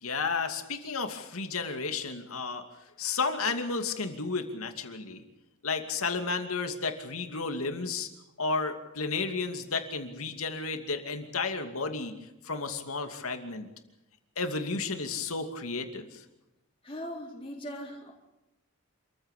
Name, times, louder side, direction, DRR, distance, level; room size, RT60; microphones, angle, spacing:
voice 1, 0.0-2.6 3.0-5.2 5.6-8.1 8.4-12.1 12.4-13.7 14.4-16.2, left 4 dB, 90° left, 6 dB, 2.6 m, -32 dB
voice 2, 16.8-18.1, equal, 25° left, -2 dB, 4.2 m, -39 dB
27.5 x 15.0 x 8.4 m, 0.95 s
head